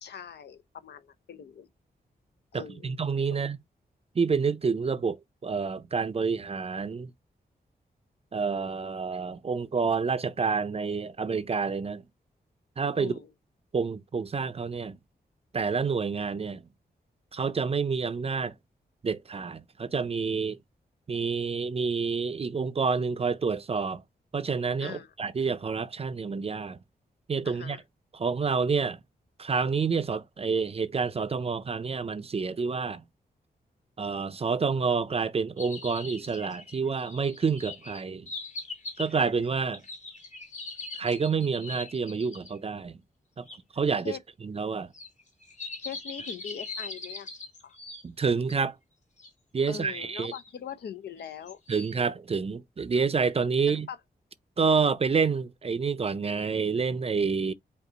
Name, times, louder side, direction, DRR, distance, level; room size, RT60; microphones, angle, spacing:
voice 1, 0.0-1.7 2.5-3.0 13.0-13.3 24.8-25.1 27.4-27.8 44.0-44.2 45.8-47.3 47.6-47.8 49.7-51.6 53.7-54.0, left 8 dB, 90° left, 0.7 m, -41 dB
voice 2, 2.5-3.6 4.2-7.1 8.3-12.0 12.8-13.2 13.7-15.0 15.5-16.6 17.3-18.5 19.0-20.6 21.1-24.0 24.3-26.8 27.3-27.8 28.1-29.0 29.4-33.0 34.0-38.3 39.0-39.8 40.9-43.0 43.4-43.5 43.7-44.2 44.4-44.9 48.0-48.8 49.5-50.3 51.7-53.9 54.6-57.5, right 5 dB, 35° right, 0.5 m, -28 dB
sound 1, 35.6-42.6 43.5-43.6 44.9-48.6 49.2-49.3 49.9-50.5 51.2-52.0, left 3 dB, 45° left, 1.3 m, -42 dB
5.3 x 2.4 x 3.8 m
wide cardioid pair, 95°, 17 cm